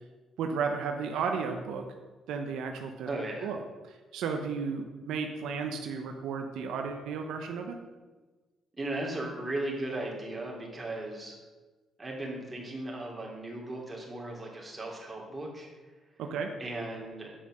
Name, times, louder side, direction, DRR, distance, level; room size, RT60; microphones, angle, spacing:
voice 1, 0.4-1.8 2.3-3.1 3.4-3.6 4.1-7.7 16.2-16.5, right 5 dB, 85° right, 4 dB, 0.8 m, -33 dB
voice 2, 3.0-3.5 8.8-11.4 12.0-15.7 16.6-17.3, right 2 dB, 20° right, -2 dB, 2.9 m, -36 dB
8.5 x 5.5 x 6.2 m, 1.3 s
cardioid pair, 90°, 0 cm